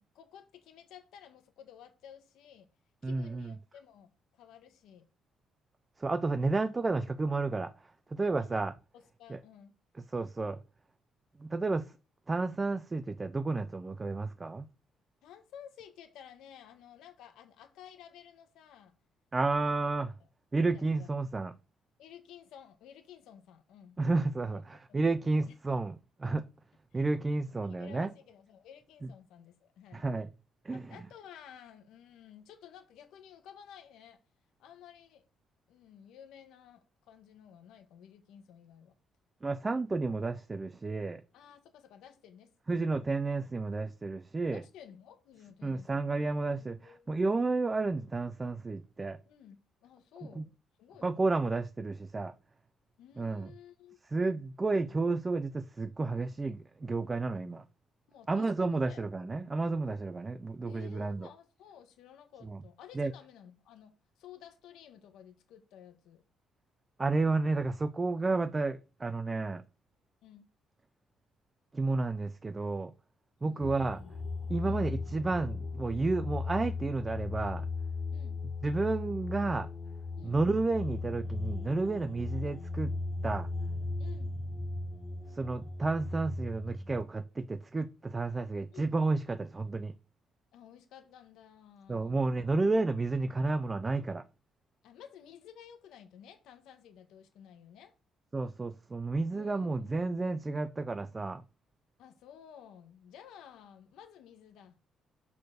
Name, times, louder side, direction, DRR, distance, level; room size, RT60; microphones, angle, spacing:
voice 1, 0.0-2.7 3.0-5.0 8.4-8.6 8.9-9.7 15.2-18.9 19.4-19.7 20.6-21.1 22.0-24.0 24.5-24.6 24.9-25.6 26.9-27.1 27.6-30.1 30.7-34.2 34.6-35.2 35.7-38.9 41.3-43.0 44.4-46.2 46.5-47.0 49.2-50.5 50.8-51.2 53.0-54.0 58.1-59.0 60.6-66.2 70.2-70.5 73.4-74.2 74.6-74.9 78.1-78.4 80.2-80.4 82.4-82.6 84.0-84.4 88.7-88.9 90.5-92.4 94.8-97.9 99.3-99.9 102.0-104.7, left 9 dB, 85° left, 1.4 m, -54 dB
voice 2, 3.0-3.5 6.0-7.7 8.1-8.7 9.3-9.4 10.1-10.6 11.4-11.9 12.3-14.7 19.3-20.1 20.5-21.5 24.0-26.4 26.9-28.1 29.9-30.3 30.6-30.8 39.4-41.2 42.7-44.6 45.6-49.2 50.4-50.5 51.0-52.3 53.2-53.5 54.1-57.6 58.3-61.3 62.4-62.6 63.0-63.1 67.0-69.6 71.7-72.9 73.4-74.0 74.5-77.7 78.6-79.7 80.2-82.9 83.2-83.5 85.3-89.9 91.9-94.2 98.3-101.4, right 3 dB, 20° right, 0.5 m, -31 dB
sound 1, 73.6-87.0, left 3 dB, 30° left, 1.2 m, -37 dB
6.6 x 4.1 x 6.5 m
cardioid pair, 145°, 0 cm